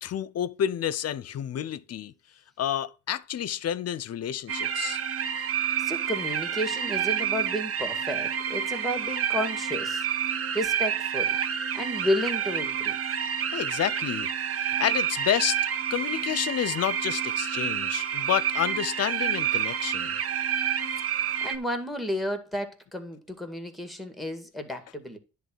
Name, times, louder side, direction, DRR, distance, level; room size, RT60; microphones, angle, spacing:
voice 1, 0.0-2.1 2.6-5.0 13.5-15.6 15.9-20.1, left 10 dB, 55° left, 0.6 m, -29 dB
sound 1, 4.5-21.6, right 8 dB, 50° right, 0.9 m, -29 dB
voice 2, 5.8-10.1 10.5-11.4 11.7-13.0 21.4-25.2, left 1 dB, ahead, 1.9 m, -32 dB
10.5 x 3.6 x 6.2 m
cardioid pair, 90°, 30 cm